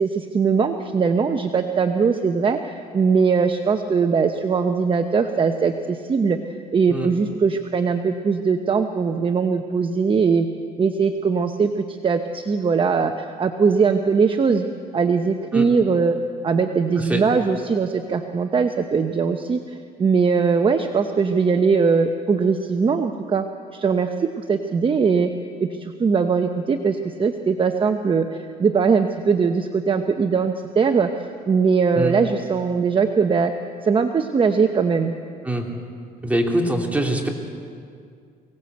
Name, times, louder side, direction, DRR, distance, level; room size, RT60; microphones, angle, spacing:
voice 1, 0.0-6.4 6.7-10.5 10.8-14.6 14.9-16.2 16.4-23.5 23.7-25.3 25.6-31.1 31.5-33.5 33.8-35.2, right 5 dB, 30° right, 6 dB, 1.0 m, -20 dB
voice 2, 36.2-37.3, right 1 dB, 10° right, 1 dB, 3.0 m, -23 dB
23.5 x 18.0 x 8.0 m, 2.3 s
cardioid pair, 110°, 17 cm